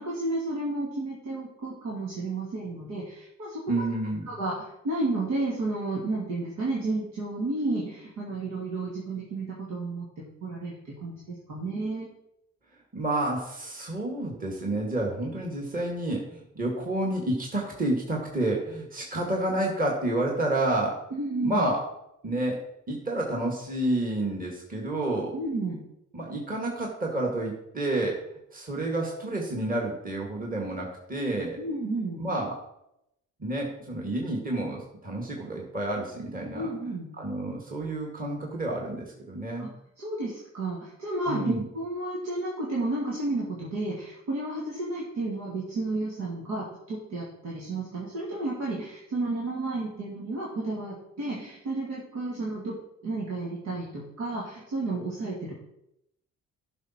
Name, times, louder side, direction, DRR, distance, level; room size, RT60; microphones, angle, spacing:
voice 1, 0.0-3.8 4.3-4.5 4.8-12.1 21.1-21.7 25.3-25.8 31.6-32.2 36.5-37.1 39.6-39.7 40.0-52.8 53.0-55.6, right 2 dB, 85° right, -5 dB, 2.6 m, -32 dB
voice 2, 3.7-4.2 12.9-21.0 21.4-21.8 22.2-25.3 26.1-28.2 28.5-31.6 32.2-32.6 33.4-36.7 37.2-39.7 41.3-41.7, right 1 dB, 30° right, -1 dB, 2.2 m, -29 dB
11.5 x 5.9 x 4.5 m, 0.82 s
cardioid pair, 90°, 30 cm